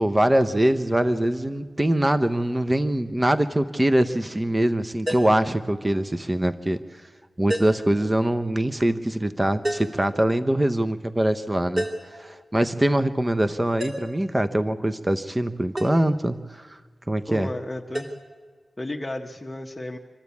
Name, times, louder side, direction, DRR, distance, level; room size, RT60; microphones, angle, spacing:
voice 1, 0.0-7.0 7.4-16.8 17.1-17.5, right 1 dB, 20° right, 10 dB, 0.7 m, -23 dB
sound 1, 5.1-5.5 7.5-7.9 9.6-10.0 11.8-12.2 13.8-14.2 15.8-16.0 17.9-18.1, equal, 40° right, 3.5 m, -29 dB
voice 2, 17.3-18.2 18.8-20.0, left 1 dB, 20° left, 2 dB, 1.1 m, -33 dB
26.5 x 12.5 x 8.4 m, 1.5 s
wide cardioid pair, 75°, 0 cm